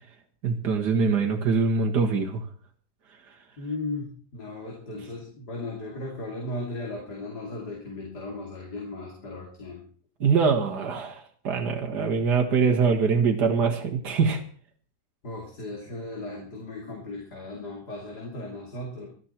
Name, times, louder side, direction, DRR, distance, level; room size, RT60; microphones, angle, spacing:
voice 1, 0.4-2.4 10.2-14.4, right 5 dB, 75° right, 2 dB, 2.1 m, -23 dB
voice 2, 3.6-9.8 15.2-19.1, left 2 dB, 65° left, -1 dB, 3.5 m, -36 dB
18.5 x 13.0 x 4.4 m, 0.43 s
omnidirectional pair, 1.8 m